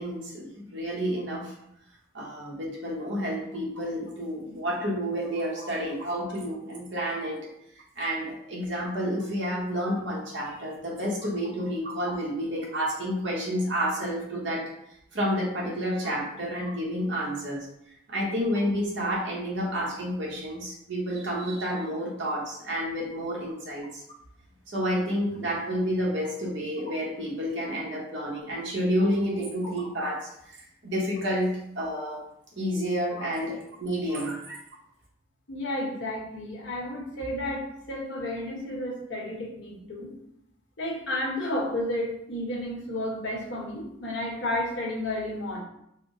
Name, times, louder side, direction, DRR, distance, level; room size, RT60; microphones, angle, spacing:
voice 1, 0.0-1.5 2.1-7.5 8.0-14.7 15.1-17.7 18.1-24.0 24.7-30.6 30.8-32.2 32.6-34.6, equal, 60° right, -3 dB, 1.1 m, -30 dB
voice 2, 35.5-40.1 40.8-45.6, left 1 dB, 65° left, -3 dB, 1.1 m, -32 dB
4.4 x 2.1 x 3.8 m, 0.76 s
head